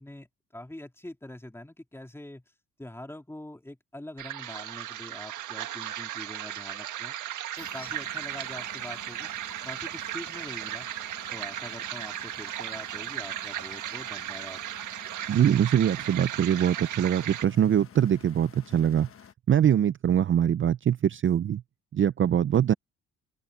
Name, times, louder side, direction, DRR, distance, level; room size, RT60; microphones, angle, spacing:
voice 1, 0.0-2.4 2.8-7.2 7.6-9.3 9.6-10.9 11.3-14.6, left 1 dB, 10° left, 3.1 m, -44 dB
sound 1, 4.2-17.4, right 12 dB, 80° right, 1.7 m, -36 dB
sound 2, 7.5-19.3, left 8 dB, 45° left, 1.3 m, -51 dB
voice 2, 15.3-19.1 19.5-21.6 21.9-22.7, right 9 dB, 40° right, 0.5 m, -23 dB
open air
cardioid pair, 90°, 30 cm